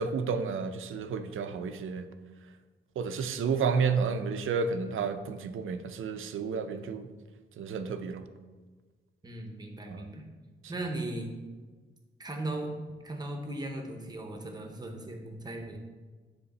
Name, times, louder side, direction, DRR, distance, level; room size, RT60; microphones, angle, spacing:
voice 1, 0.0-2.1 3.0-7.1 7.6-8.3 9.9-10.0, right 5 dB, 75° right, 9 dB, 0.5 m, -31 dB
voice 2, 9.2-10.2 10.7-11.3 12.2-12.7 13.0-15.8, right 1 dB, 20° right, 3 dB, 0.8 m, -37 dB
9.6 x 3.6 x 4.1 m, 1.4 s
wide cardioid pair, 175°, 21 cm